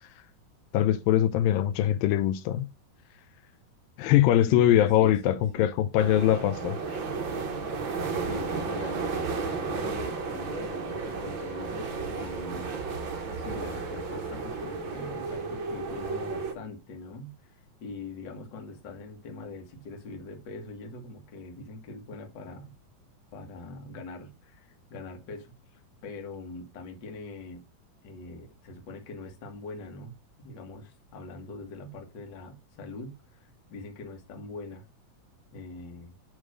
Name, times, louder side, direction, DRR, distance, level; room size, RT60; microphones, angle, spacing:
voice 1, 0.7-2.7 4.0-7.0, left 12 dB, 80° left, 2.3 m, -22 dB
voice 2, 4.5-5.7 7.3-12.7 13.3-22.7 23.3-27.6 28.0-30.1 30.4-34.8 35.5-36.1, left 3 dB, 45° left, 1.6 m, -43 dB
sound 1, 6.0-16.5, right 4 dB, 75° right, 1.1 m, -33 dB
9.0 x 3.2 x 6.3 m
omnidirectional pair, 4.1 m